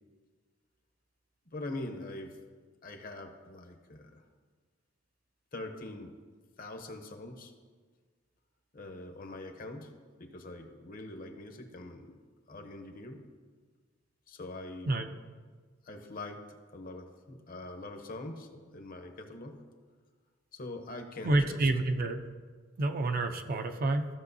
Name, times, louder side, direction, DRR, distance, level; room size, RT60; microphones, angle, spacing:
voice 1, 1.5-2.4 2.8-4.3 5.5-6.1 6.6-7.5 8.7-9.9 10.2-12.2 12.5-13.3 14.3-14.9 15.8-16.4 16.7-19.6 20.5-21.7, left 2 dB, 45° left, 5 dB, 0.8 m, -43 dB
voice 2, 21.2-22.2 22.8-24.1, right 2 dB, 45° right, 6 dB, 0.5 m, -28 dB
14.0 x 6.3 x 2.7 m, 1.5 s
head